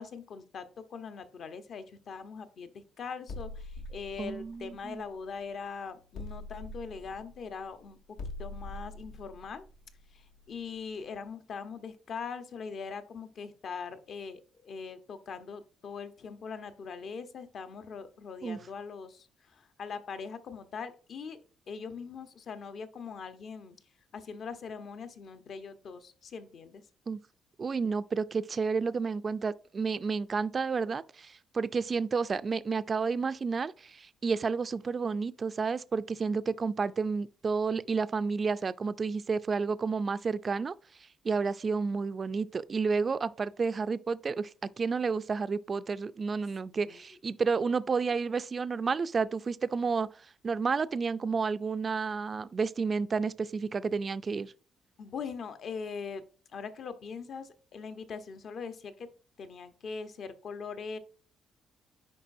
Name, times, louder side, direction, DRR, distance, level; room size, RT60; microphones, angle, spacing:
voice 1, 0.0-8.0 8.4-9.6 10.1-21.4 21.7-23.8 24.1-26.8 46.7-47.0 55.0-56.2 56.5-59.1 59.4-61.0, left 5 dB, 55° left, 0.9 m, -41 dB
tiny bass, 3.3-5.6 6.1-10.8, left 2 dB, 85° left, 1.7 m, -44 dB
voice 2, 4.2-5.0 18.4-18.6 27.1-27.2 27.6-40.7 41.2-44.5 44.8-50.1 50.4-54.5, right 5 dB, 35° right, 0.4 m, -31 dB
10.0 x 4.1 x 2.6 m
cardioid pair, 125°, 0 cm